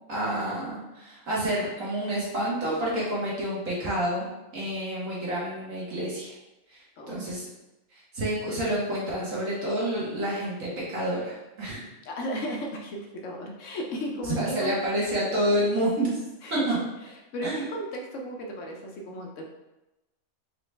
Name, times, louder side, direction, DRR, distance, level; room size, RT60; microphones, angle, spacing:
voice 1, 0.1-6.3 6.7-7.5 7.9-11.9 14.4-16.2 16.5-16.8 17.4-17.7, right 1 dB, 65° right, -6 dB, 1.7 m, -29 dB
voice 2, 12.0-14.7 16.4-19.4, equal, 70° left, 1 dB, 0.9 m, -35 dB
4.6 x 2.9 x 3.3 m, 1.0 s
omnidirectional pair, 1.4 m